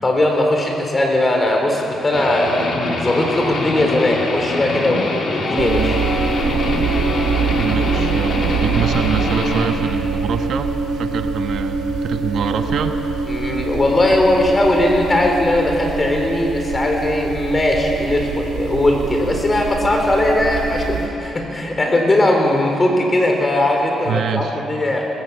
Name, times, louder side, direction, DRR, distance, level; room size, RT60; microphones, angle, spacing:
voice 1, 0.0-6.0 13.3-25.1, left 1 dB, 25° left, 2 dB, 4.1 m, -19 dB
Guitar, 2.1-9.7, left 2 dB, 55° left, 2.9 m, -24 dB
sound 1, 5.6-21.1, right 4 dB, 85° right, 2.6 m, -23 dB
voice 2, 7.6-10.7 11.0-13.0 24.1-24.6, right 7 dB, 65° right, 6 dB, 1.1 m, -24 dB
19.5 x 16.0 x 8.4 m, 3.0 s
cardioid pair, 90°, 0 cm